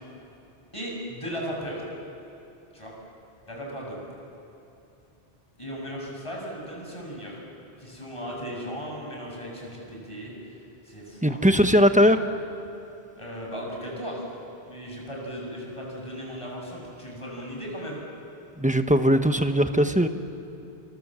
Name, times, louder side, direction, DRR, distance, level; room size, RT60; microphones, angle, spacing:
voice 1, 0.7-1.8 2.7-2.9 3.5-4.0 5.6-7.4 7.8-10.3 10.9-11.4 13.2-14.3 14.6-18.0, equal, 30° left, -2 dB, 6.8 m, -36 dB
voice 2, 11.2-12.2 18.6-20.1, equal, 5° right, 7 dB, 1.1 m, -19 dB
28.5 x 26.0 x 7.6 m, 2.7 s
omnidirectional pair, 1.1 m